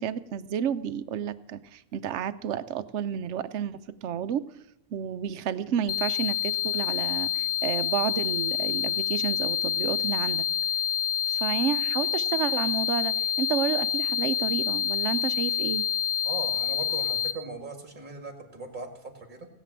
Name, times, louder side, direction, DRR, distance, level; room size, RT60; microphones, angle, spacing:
voice 1, 0.0-4.5 4.9-10.4 11.3-15.9, right 9 dB, 65° right, 12 dB, 1.0 m, -31 dB
sound 1, 5.9-17.3, left 9 dB, 55° left, 1.1 m, -27 dB
voice 2, 16.2-19.5, right 3 dB, 35° right, 6 dB, 2.0 m, -39 dB
17.5 x 8.4 x 7.3 m, 0.86 s
omnidirectional pair, 1.4 m